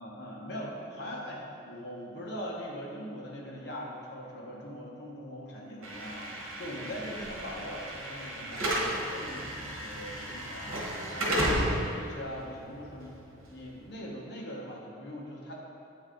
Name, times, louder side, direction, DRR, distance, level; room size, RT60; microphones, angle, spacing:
voice 1, 0.0-10.8 11.1-13.2 13.5-15.6, equal, 55° left, -3 dB, 0.9 m, -41 dB
Slam / Alarm, 5.8-13.9, right 1 dB, 85° right, 1.1 m, -34 dB
7.8 x 3.3 x 3.8 m, 2.5 s
head